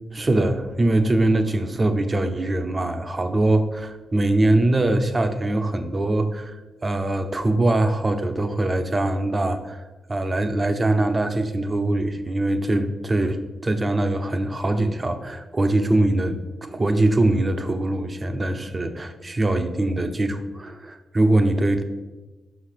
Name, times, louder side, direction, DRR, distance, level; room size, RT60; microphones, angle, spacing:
voice 1, 0.1-9.8 10.1-21.8, right 2 dB, 30° right, 8 dB, 0.8 m, -22 dB
5.7 x 5.1 x 5.8 m, 1.1 s
cardioid pair, 70°, 0 cm